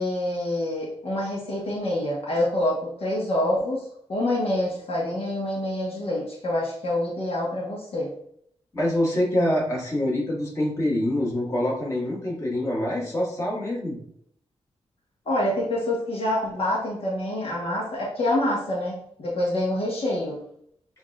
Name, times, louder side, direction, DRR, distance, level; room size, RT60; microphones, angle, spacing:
voice 1, 0.0-8.1 15.2-20.4, left 1 dB, 60° left, -5 dB, 1.3 m, -26 dB
voice 2, 8.7-14.0, left 1 dB, 25° left, -5 dB, 1.7 m, -25 dB
7.0 x 2.7 x 2.4 m, 0.68 s
wide cardioid pair, 115°, 11 cm